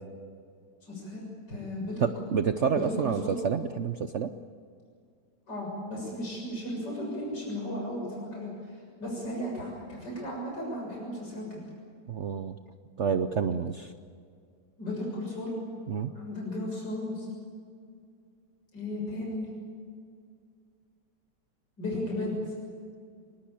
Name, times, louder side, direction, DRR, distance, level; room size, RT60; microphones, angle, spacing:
voice 1, 0.9-1.2 1.5-2.1 2.6-3.4 5.5-8.5 9.0-11.6 14.8-15.6 16.2-17.3 18.7-19.5 21.8-22.4, left 1 dB, 85° left, -3 dB, 7.5 m, -35 dB
voice 2, 2.0-4.3 12.1-12.5 13.0-13.9 15.9-16.1, right 6 dB, 55° right, 9 dB, 0.9 m, -28 dB
25.0 x 20.0 x 8.8 m, 2.2 s
omnidirectional pair, 1.8 m